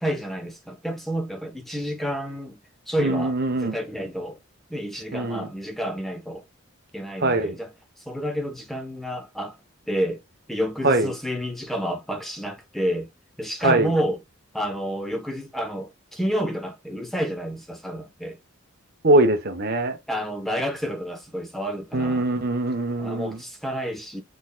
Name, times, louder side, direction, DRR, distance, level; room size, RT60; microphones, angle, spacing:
voice 1, 0.0-2.6 2.9-3.3 3.6-4.4 4.7-6.4 6.9-7.7 8.0-9.6 9.9-10.2 10.5-13.1 13.4-14.2 14.5-18.4 20.1-22.2 23.0-24.2, equal, ahead, 0.9 m, -29 dB
voice 2, 3.0-3.8 5.1-5.5 7.2-7.6 10.8-11.1 13.6-13.9 19.0-20.0 21.9-23.4, right 2 dB, 45° right, 0.8 m, -22 dB
6.3 x 3.7 x 2.2 m
head